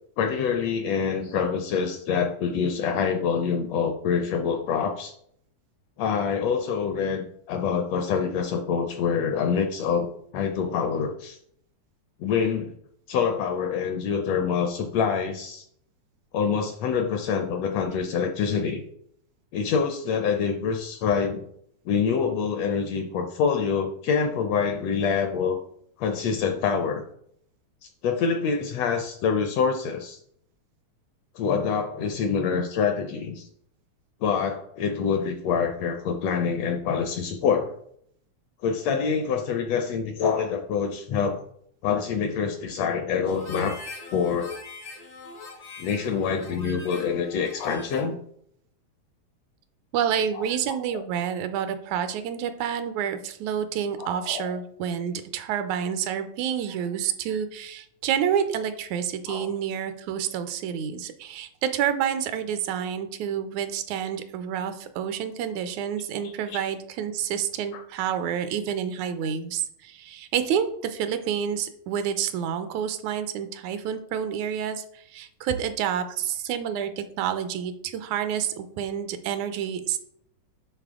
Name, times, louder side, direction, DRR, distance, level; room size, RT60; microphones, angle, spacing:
voice 1, 0.2-5.1 6.0-11.4 12.2-12.7 13.1-15.7 16.3-18.8 19.5-21.4 21.8-25.6 26.0-27.0 27.8-30.2 31.3-33.5 34.2-37.7 38.6-41.4 41.8-43.8 44.1-44.6 45.8-48.2 50.3-50.5 50.9-51.0 54.0-54.5 59.3-59.5 66.2-66.6 67.7-67.8, left 6 dB, 75° left, 6 dB, 1.5 m, -26 dB
Harmonica, 43.2-48.2, left 3 dB, 55° left, 0.6 m, -42 dB
voice 2, 49.9-80.0, right 8 dB, 80° right, 10 dB, 1.9 m, -29 dB
10.0 x 4.0 x 3.6 m, 0.68 s
omnidirectional pair, 3.4 m